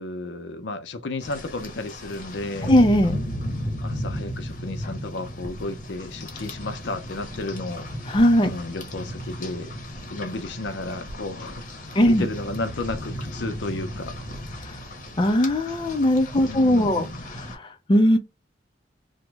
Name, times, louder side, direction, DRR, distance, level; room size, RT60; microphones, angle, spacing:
voice 1, 0.0-2.7 3.8-7.9 8.4-9.7 10.1-14.1 16.4-17.2, left 2 dB, 75° left, 0.5 m, -33 dB
Rain, 1.2-17.5, equal, 45° left, 0.8 m, -35 dB
voice 2, 2.6-3.2 8.1-8.5 11.9-12.3 14.6-14.7 15.2-17.0 17.3-18.2, equal, 25° left, 0.4 m, -19 dB
2.9 x 2.1 x 3.2 m
head